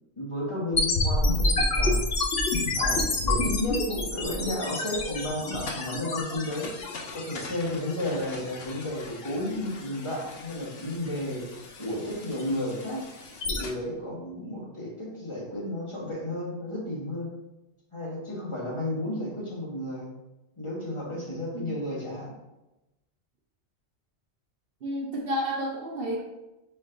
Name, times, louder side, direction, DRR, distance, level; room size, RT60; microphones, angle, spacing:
voice 1, 0.2-2.0 2.8-6.7 7.1-11.5 11.8-13.0 13.4-17.3 17.9-20.1 20.6-22.3, left 1 dB, 25° left, -5 dB, 1.2 m, -32 dB
sound 1, 0.7-13.7, left 2 dB, 65° left, 1.0 m, -29 dB
voice 2, 24.8-26.2, equal, 60° right, 0 dB, 0.9 m, -31 dB
4.4 x 3.1 x 3.7 m, 0.98 s
omnidirectional pair, 1.2 m